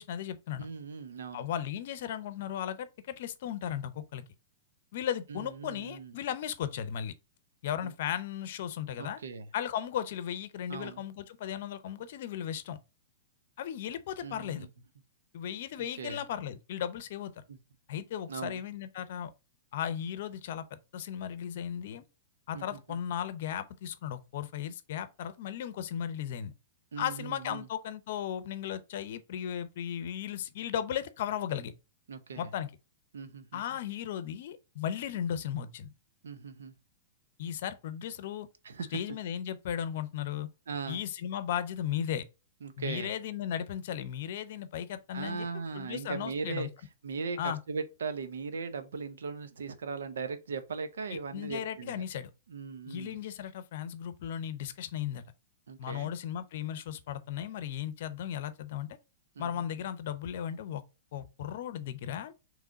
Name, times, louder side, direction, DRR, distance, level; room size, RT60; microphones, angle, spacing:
voice 1, 0.0-0.7 1.3-4.2 4.9-7.1 7.6-9.2 9.5-12.8 13.6-14.7 15.3-17.3 17.9-19.3 19.7-22.0 22.5-26.5 27.0-31.7 32.4-32.7 33.5-35.9 37.4-38.5 38.9-40.5 40.9-42.2 42.8-45.5 45.7-46.7 47.4-47.6 51.3-52.3 52.9-55.2 55.8-58.9 59.4-60.8 61.1-62.3, left 9 dB, 60° left, 0.6 m, -36 dB
voice 2, 0.6-1.5 5.3-6.2 7.8-7.9 9.0-9.5 10.7-11.0 14.2-14.7 15.8-16.2 17.5-17.6 18.3-18.6 22.5-23.0 26.9-27.7 32.1-32.5 33.1-33.6 36.2-36.7 38.6-39.2 40.7-41.0 42.6-43.1 45.1-46.7 47.0-52.0 52.5-53.2 55.7-56.1 59.4-59.6, right 5 dB, 90° right, 0.6 m, -39 dB
3.7 x 3.2 x 4.0 m
hypercardioid pair, 135°, 0 cm